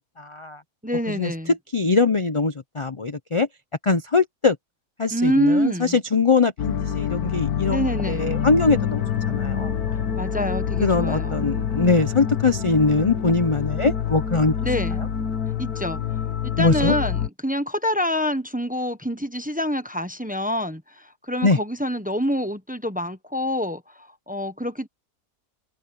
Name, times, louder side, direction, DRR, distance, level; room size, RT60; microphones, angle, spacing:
voice 1, 0.2-0.6 1.1-3.5 3.8-4.6 5.0-9.7 10.8-14.5 16.6-16.9 21.4-21.6, left 3 dB, 30° left, 0.6 m, -22 dB
voice 2, 0.8-1.5 5.1-6.0 7.7-8.3 10.2-11.5 14.6-15.0 15.6-16.0 16.4-24.9, equal, 5° right, 0.9 m, -26 dB
sound 1, 6.6-17.3, left 8 dB, 75° left, 1.6 m, -26 dB
open air
omnidirectional pair, 1.6 m